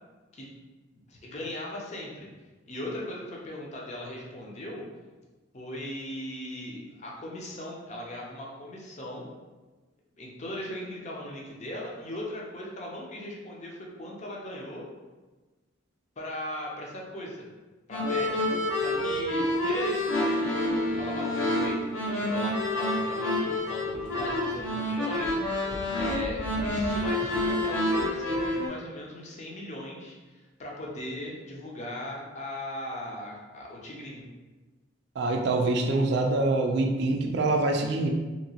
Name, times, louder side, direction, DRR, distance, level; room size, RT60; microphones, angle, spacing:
voice 1, 0.9-2.3 2.7-4.9 5.5-9.3 10.2-14.9 16.2-17.5 17.9-18.5 18.8-20.6 20.9-34.2, left 1 dB, 35° left, -3 dB, 0.6 m, -38 dB
sound 1, 17.9-28.7, left 1 dB, 85° left, 0.8 m, -28 dB
voice 2, 35.2-38.1, right 2 dB, 55° right, 2 dB, 0.4 m, -25 dB
2.9 x 2.8 x 2.7 m, 1.2 s
head